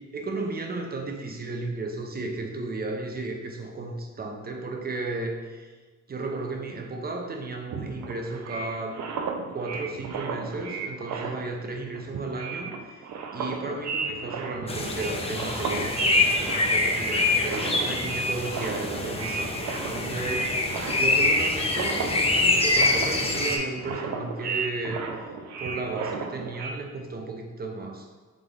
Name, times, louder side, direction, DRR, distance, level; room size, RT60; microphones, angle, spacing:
voice 1, 0.0-5.7 6.1-9.0 9.5-13.0 13.3-20.7 20.9-25.3 25.6-28.2, right 3 dB, 30° right, 3 dB, 0.7 m, -34 dB
sound 1, 7.7-11.7 12.0-26.7, right 4 dB, 65° right, 0.6 m, -33 dB
sound 2, 14.7-23.6, left 2 dB, 20° left, 0.6 m, -25 dB
3.9 x 3.5 x 3.4 m, 1.4 s
cardioid pair, 90°, 30 cm